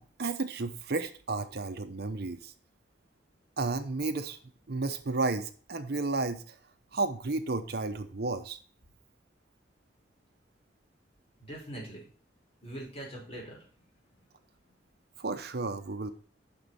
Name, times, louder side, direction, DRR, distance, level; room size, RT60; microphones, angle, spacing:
voice 1, 0.0-2.5 3.6-4.4 4.7-6.6 6.9-8.6 15.2-16.1, right 3 dB, 60° right, 9 dB, 0.8 m, -32 dB
voice 2, 11.4-12.0 12.6-13.9 14.1-14.3 14.6-14.7, right 1 dB, 35° left, -2 dB, 4.7 m, -43 dB
9.8 x 6.1 x 4.2 m, 0.44 s
head